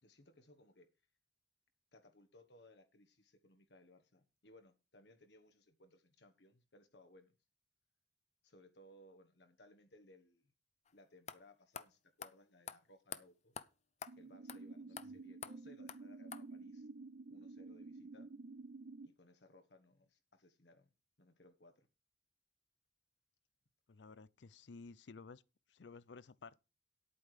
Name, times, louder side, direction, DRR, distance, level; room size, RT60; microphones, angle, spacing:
voice 1, 0.0-0.9 1.9-7.3 8.4-10.5 10.9-13.5 14.2-16.9 17.3-18.3 19.0-20.9 21.2-21.9, left 1 dB, 70° left, 1.4 m, -64 dB
sound 1, 10.9-11.0 11.3-11.4 11.7-11.9 12.2-12.3 12.7-12.8 13.1-13.2 13.6-13.7 14.0-14.1 14.5-14.6 15.0-15.1 15.4-15.5 15.9-16.0 16.3-16.4, left 7 dB, 40° left, 0.6 m, -46 dB
sound 2, 14.1-19.1, right 3 dB, 60° right, 0.5 m, -51 dB
voice 2, 23.9-25.4 25.7-26.6, left 4 dB, 90° left, 0.6 m, -54 dB
9.4 x 8.6 x 4.9 m
head